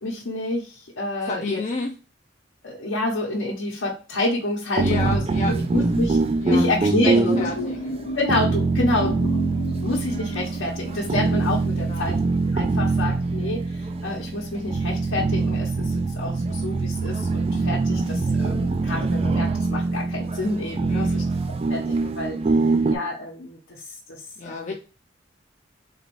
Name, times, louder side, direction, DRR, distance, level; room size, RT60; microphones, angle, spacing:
voice 1, 0.0-1.6 2.6-6.2 6.5-7.7 8.1-9.3 9.8-12.2 12.5-21.2 21.7-22.6 22.9-23.8 24.1-24.7, left 2 dB, 80° left, -4 dB, 0.9 m, -28 dB
voice 2, 1.2-2.0 4.8-6.0 6.4-8.0 8.9-9.0 11.8-12.1 20.9-21.2 24.4-24.7, left 3 dB, 35° left, 1 dB, 0.4 m, -32 dB
sound 1, 4.8-23.0, right 3 dB, 30° right, 0.3 m, -24 dB
sound 2, 7.3-12.3, right 1 dB, 50° left, 1.0 m, -33 dB
4.0 x 3.0 x 3.0 m, 0.35 s
head